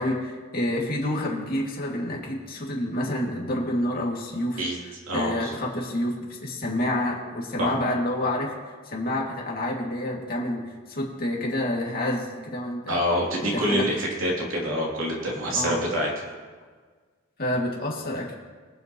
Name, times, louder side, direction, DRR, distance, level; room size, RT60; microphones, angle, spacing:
voice 1, 0.0-4.6 5.1-8.5 8.9-13.0 13.4-13.8 15.5-15.8 17.4-18.3, left 1 dB, 45° left, -3 dB, 2.5 m, -28 dB
voice 2, 5.1-5.6 7.6-7.7 12.9-16.1, equal, 75° right, -3 dB, 3.1 m, -26 dB
24.0 x 8.0 x 3.1 m, 1.5 s
head